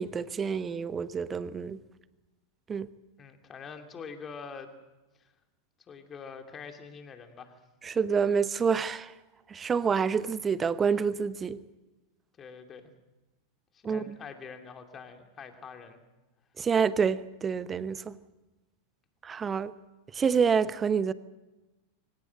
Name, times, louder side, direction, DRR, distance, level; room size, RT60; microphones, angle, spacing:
voice 1, 0.0-1.8 2.7-2.9 7.8-9.1 9.5-11.6 13.8-14.2 16.6-18.2 19.2-19.7 20.1-21.1, right 6 dB, 20° right, 0.9 m, -27 dB
voice 2, 3.2-4.7 5.1-5.3 5.9-7.6 12.4-12.9 13.7-16.0, left 6 dB, 25° left, 2.7 m, -45 dB
24.0 x 18.0 x 7.7 m
figure-of-eight pair, 90°, 0 cm